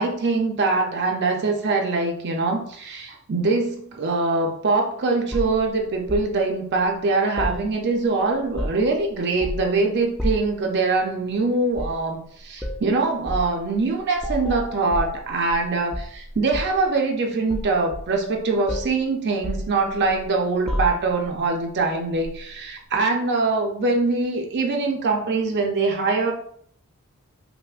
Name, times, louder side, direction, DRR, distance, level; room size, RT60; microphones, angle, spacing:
voice 1, 0.0-26.3, right 3 dB, 50° right, 2 dB, 0.5 m, -23 dB
sound 1, 5.3-6.3 7.4-8.1 8.4-9.0 9.4-9.8 10.2-10.6 11.7-12.0 12.6-12.8 13.3-13.5 14.2-15.6 15.9-16.9 17.5-18.4 18.7-19.0 19.4-20.2 20.7-21.3 22.2-22.4, equal, 5° left, 0.4 m, -30 dB
5.4 x 2.0 x 2.4 m, 0.63 s
head